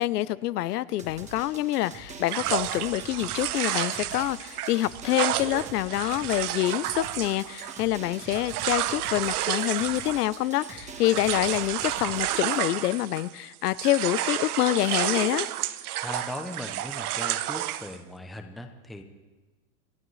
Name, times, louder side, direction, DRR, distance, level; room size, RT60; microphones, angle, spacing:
voice 1, 0.0-15.5, left 15 dB, 90° left, 18 dB, 0.6 m, -26 dB
Drum, 1.0-12.6, right 3 dB, 15° right, 1.2 m, -44 dB
sound 1, 2.3-13.4 13.6-18.0, right 13 dB, 75° right, 0.9 m, -31 dB
voice 2, 16.0-19.0, left 1 dB, ahead, 5 dB, 0.5 m, -38 dB
28.0 x 12.5 x 3.2 m, 1.3 s
supercardioid pair, 145°, 45 cm